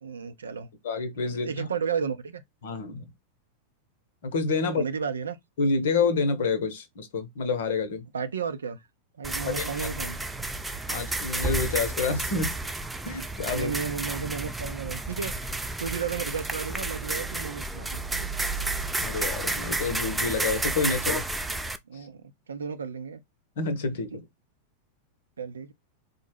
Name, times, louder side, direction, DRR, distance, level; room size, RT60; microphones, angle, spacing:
voice 1, 0.0-0.7 1.3-2.4 4.6-5.4 8.1-8.8 9.2-10.3 13.5-15.3 15.8-18.3 21.9-22.2 22.5-23.2 24.1-24.2 25.4-25.7, right 6 dB, 70° right, 0.5 m, -33 dB
voice 2, 0.8-1.7 2.6-3.1 4.2-4.8 5.6-8.1 9.4-9.7 10.9-12.5 13.0-13.7 19.0-21.2 21.9-22.1 23.6-24.3, left 4 dB, 55° left, 0.8 m, -28 dB
sound 1, 9.2-21.8, right 2 dB, 5° right, 0.4 m, -31 dB
4.0 x 2.1 x 3.2 m
figure-of-eight pair, 90°, 0 cm